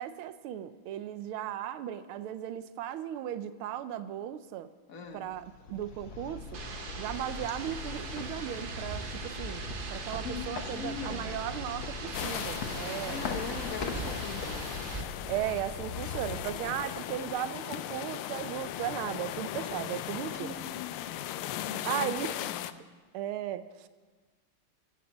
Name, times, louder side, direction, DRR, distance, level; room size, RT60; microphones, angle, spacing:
voice 1, 0.0-4.7 5.1-6.5 7.0-13.6 14.0-14.2 15.3-20.5 21.8-22.5 23.1-23.9, right 11 dB, 85° right, 13 dB, 1.6 m, -36 dB
voice 2, 4.9-5.3 10.2-11.3 13.1-14.9 20.3-21.1 21.5-22.7, left 6 dB, 50° left, 6 dB, 1.4 m, -41 dB
sound 1, 5.3-17.3, left 5 dB, 65° left, 1.7 m, -41 dB
sound 2, 6.5-15.0, right 4 dB, 55° right, 0.5 m, -40 dB
sound 3, 12.1-22.7, left 13 dB, 90° left, 1.5 m, -38 dB
16.0 x 7.4 x 7.2 m, 1.4 s
omnidirectional pair, 2.3 m